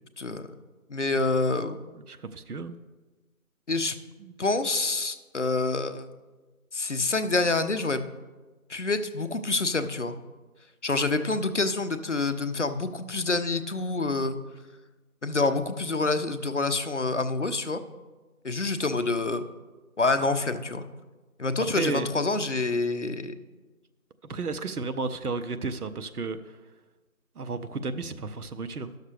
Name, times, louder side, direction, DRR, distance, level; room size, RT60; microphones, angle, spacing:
voice 1, 0.2-0.5 0.9-1.8 3.7-4.0 4.4-6.1 6.7-8.0 8.7-10.2 10.8-14.4 15.2-17.8 18.4-19.4 20.0-20.9 21.4-23.3, left 3 dB, 55° left, 9 dB, 0.6 m, -27 dB
voice 2, 2.1-2.8 4.2-4.3 21.7-22.1 24.3-26.4 27.4-28.9, right 4 dB, 85° right, 11 dB, 0.7 m, -32 dB
11.5 x 6.5 x 3.3 m, 1.2 s
figure-of-eight pair, 170°, 44 cm